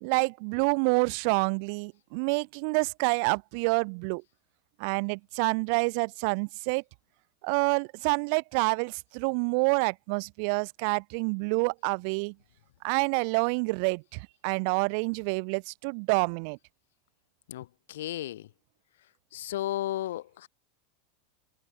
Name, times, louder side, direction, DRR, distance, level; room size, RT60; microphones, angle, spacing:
voice 1, 0.0-4.2 4.8-6.8 7.4-12.3 12.8-16.6, right 38 dB, 50° right, 1.3 m, -28 dB
voice 2, 17.5-18.5 19.3-20.5, left 13 dB, 85° left, 1.8 m, -34 dB
supercardioid pair, 165°, 0 cm